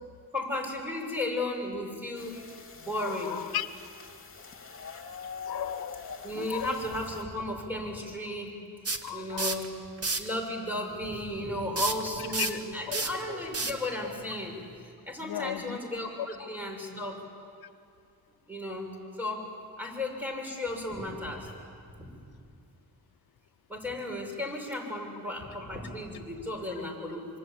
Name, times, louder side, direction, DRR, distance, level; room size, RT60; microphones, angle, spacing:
voice 1, 0.3-2.4 2.7-3.3 6.2-8.6 9.1-9.8 10.2-14.5 15.0-17.2 18.5-18.9 19.2-19.4 19.8-21.5 22.0-22.1 23.7-27.3, left 1 dB, 5° right, 1 dB, 6.6 m, -34 dB
sound 1, 2.1-7.2, left 5 dB, 35° left, 3.0 m, -44 dB
voice 2, 3.0-3.7 5.5-6.1 6.3-6.8 9.0-9.6 12.4-12.6 12.9-13.4 15.2-15.8 16.2-16.3 26.8-26.9, left 11 dB, 80° left, 9 dB, 0.9 m, -36 dB
sound 2, 8.9-9.7 10.0-10.3 11.8-14.8, right 3 dB, 40° right, 2.0 m, -32 dB
26.0 x 25.0 x 8.7 m, 2.4 s
cardioid pair, 105°, 36 cm